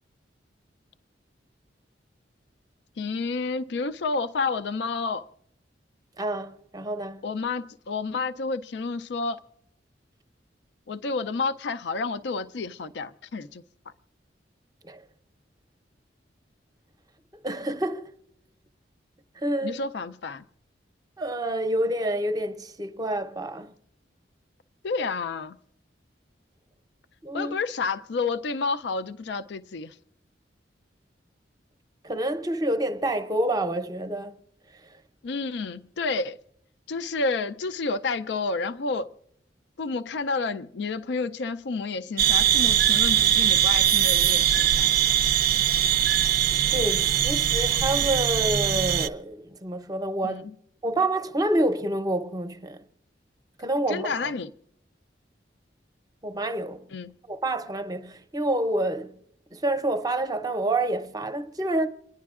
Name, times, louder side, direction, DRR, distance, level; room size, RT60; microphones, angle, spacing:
voice 1, 3.0-5.3 7.2-9.4 10.9-13.6 19.6-20.4 24.8-25.6 27.3-30.0 35.2-36.4 36.9-39.1 39.8-44.9 50.2-50.5 53.9-54.5 56.9-57.1, left 4 dB, 65° left, 0.4 m, -30 dB
voice 2, 6.2-7.2 14.8-15.0 17.4-18.1 19.4-19.8 21.2-23.7 27.2-27.5 32.0-34.4 34.7-35.0 46.7-50.5 50.8-52.8 53.6-54.3 56.2-56.9 57.3-59.2 59.5-61.9, right 1 dB, 20° right, 0.7 m, -28 dB
sound 1, 42.2-49.1, right 10 dB, 55° right, 0.4 m, -21 dB
28.5 x 10.5 x 2.4 m
head